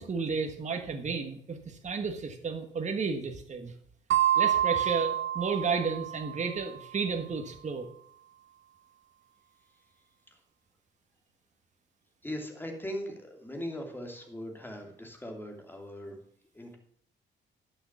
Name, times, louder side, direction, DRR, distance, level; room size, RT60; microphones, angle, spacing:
voice 1, 0.0-3.7 4.3-7.9, right 5 dB, 35° right, 5 dB, 1.5 m, -32 dB
sound 1, 4.1-6.6, right 11 dB, 70° right, 0.9 m, -27 dB
voice 2, 12.2-16.2 16.5-16.8, equal, 10° left, 2 dB, 2.9 m, -39 dB
11.0 x 6.7 x 6.1 m, 0.64 s
cardioid pair, 90°, 20 cm